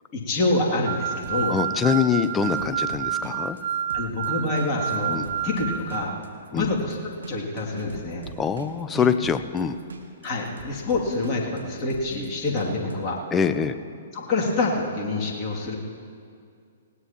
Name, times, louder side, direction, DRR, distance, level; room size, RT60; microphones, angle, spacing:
voice 1, 0.1-1.6 2.5-2.6 3.9-5.2 5.4-6.2 6.5-8.3 8.9-9.0 10.2-13.2 14.1-15.8, left 2 dB, 30° left, -3 dB, 2.7 m, -26 dB
sound 1, 0.9-6.0, right 8 dB, 50° right, 0.7 m, -29 dB
sound 2, 1.2-12.9, right 3 dB, 75° right, 1.4 m, -42 dB
voice 2, 1.5-3.6 5.1-5.3 6.5-6.7 8.4-9.8 13.3-13.7, left 6 dB, 15° left, 11 dB, 0.6 m, -24 dB
19.5 x 17.5 x 3.0 m, 2.3 s
figure-of-eight pair, 120°, 0 cm